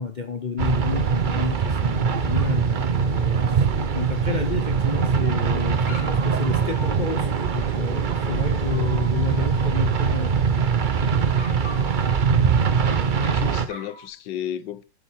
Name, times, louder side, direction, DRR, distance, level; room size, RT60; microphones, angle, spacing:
voice 1, 0.0-3.7 3.9-10.4, left 4 dB, 40° left, 0.6 m, -31 dB
sound 1, 0.6-13.7, right 6 dB, 55° right, 0.5 m, -22 dB
sound 2, 1.3-9.7, left 1 dB, 10° right, 2.2 m, -40 dB
Dog, 4.3-5.2 5.8-7.5 8.3-10.4 11.3-13.2 13.7-14.1, left 1 dB, 15° left, 2.8 m, -43 dB
voice 2, 13.1-14.8, left 10 dB, 80° left, 1.5 m, -33 dB
10.5 x 7.4 x 4.4 m
omnidirectional pair, 2.0 m